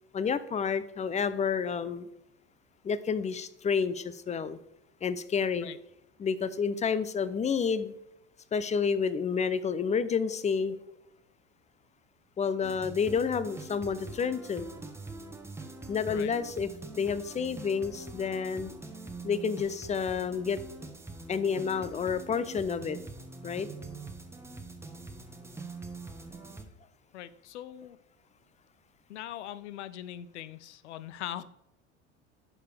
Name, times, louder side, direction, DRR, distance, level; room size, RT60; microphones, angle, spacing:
voice 1, 0.1-2.1 2.8-4.6 5.0-5.7 6.2-7.9 8.5-10.8 12.4-14.7 15.9-16.7 17.0-18.7 19.2-20.6 21.3-23.0 23.4-23.7, left 6 dB, 20° left, 15 dB, 0.6 m, -29 dB
sound 1, 12.6-26.6, right 3 dB, 5° right, 1.1 m, -44 dB
voice 2, 27.1-28.0 29.1-31.4, left 12 dB, 80° left, 15 dB, 0.5 m, -41 dB
11.5 x 4.8 x 3.4 m, 0.87 s
hypercardioid pair, 80°, 34 cm